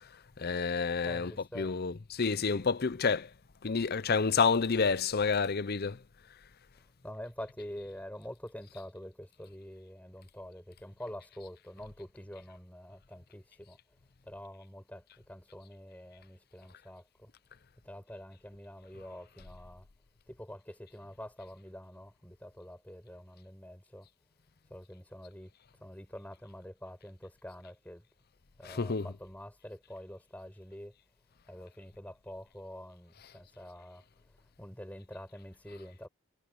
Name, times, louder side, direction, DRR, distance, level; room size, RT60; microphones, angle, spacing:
voice 1, 0.4-3.3 3.6-6.0 28.6-29.1, left 5 dB, 45° left, 0.6 m, -29 dB
voice 2, 1.0-1.8 6.7-14.0 14.2-17.3 17.8-19.9 20.3-24.1 24.7-28.1 28.6-30.9 31.4-36.1, equal, 5° left, 6.0 m, -47 dB
head